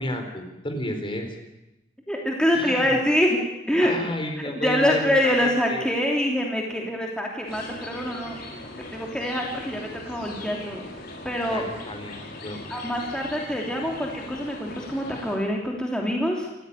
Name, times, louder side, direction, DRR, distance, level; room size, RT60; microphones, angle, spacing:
voice 1, 0.0-1.4 2.5-3.0 3.8-5.9 11.4-12.6, left 1 dB, 30° left, 5 dB, 4.3 m, -32 dB
voice 2, 2.1-3.4 3.7-4.0 4.5-8.4 8.9-10.8 11.2-11.6 12.7-16.6, equal, 5° left, -1 dB, 3.0 m, -25 dB
sound 1, 7.5-15.4, left 2 dB, 60° left, 5.4 m, -40 dB
27.5 x 14.5 x 9.9 m, 0.94 s
head